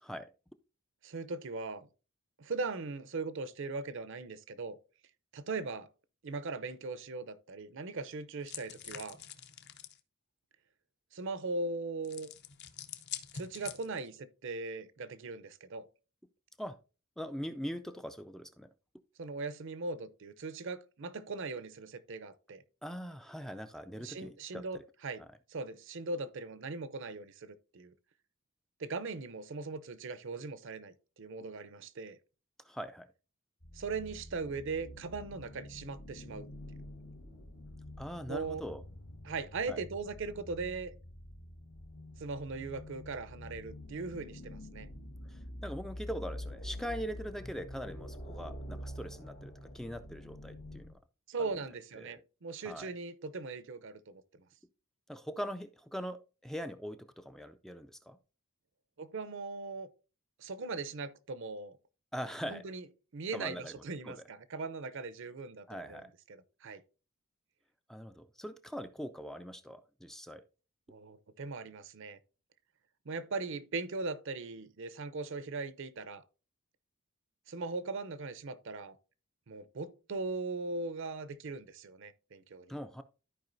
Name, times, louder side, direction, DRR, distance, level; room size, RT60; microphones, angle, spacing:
voice 1, 1.0-1.9 2.4-4.8 5.3-5.9 6.2-9.2 11.1-12.3 13.3-15.9 19.2-22.6 24.0-25.2 25.5-27.9 28.8-32.2 33.7-36.9 38.3-38.6 39.2-40.9 42.2-44.9 51.3-54.2 59.0-59.9 60.4-61.8 62.4-62.8 63.1-66.8 70.9-72.2 73.1-76.2 77.5-79.0 79.5-82.7, right 3 dB, 60° right, 0.6 m, -39 dB
sound 1, 8.5-10.0 12.0-14.2, left 9 dB, 50° left, 0.7 m, -45 dB
voice 2, 17.2-18.7 22.8-24.8 32.6-33.1 38.0-38.8 39.7-39.8 45.3-50.9 51.4-51.5 52.0-52.2 52.6-52.9 55.1-58.2 62.1-62.6 63.3-63.8 64.0-64.2 65.7-66.1 67.9-70.4 82.7-83.0, equal, ahead, 0.3 m, -42 dB
sound 2, 33.6-50.9, left 1 dB, 75° left, 2.1 m, -47 dB
13.5 x 4.8 x 2.6 m
head